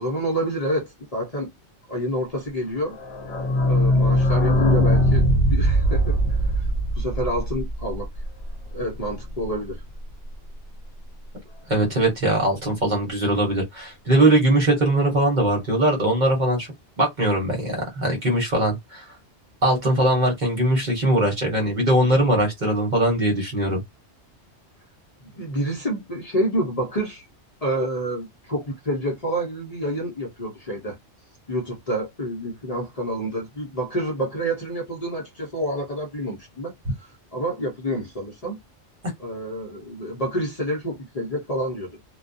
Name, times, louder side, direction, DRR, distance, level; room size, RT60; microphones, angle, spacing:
voice 1, 0.0-1.5 1.9-3.0 3.6-6.7 7.0-8.1 8.7-9.8 25.2-27.2 27.6-31.0 31.5-38.6 39.2-41.9, right 1 dB, 40° left, 0.8 m, -28 dB
sound 1, 2.9-8.5 8.8-8.9 9.1-9.2 9.4-9.5, equal, 75° left, 1.0 m, -20 dB
voice 2, 11.7-19.1 19.6-23.8, right 1 dB, 45° right, 1.1 m, -21 dB
2.4 x 2.2 x 2.6 m
omnidirectional pair, 1.2 m